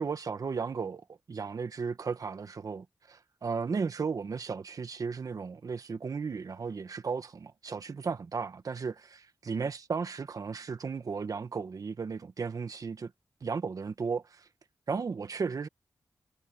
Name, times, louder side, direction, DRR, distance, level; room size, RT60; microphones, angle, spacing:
voice 1, 0.0-13.1 13.4-14.5 14.9-15.7, right 5 dB, 60° right, 1.4 m, -35 dB
cardioid pair, 65°, 7 cm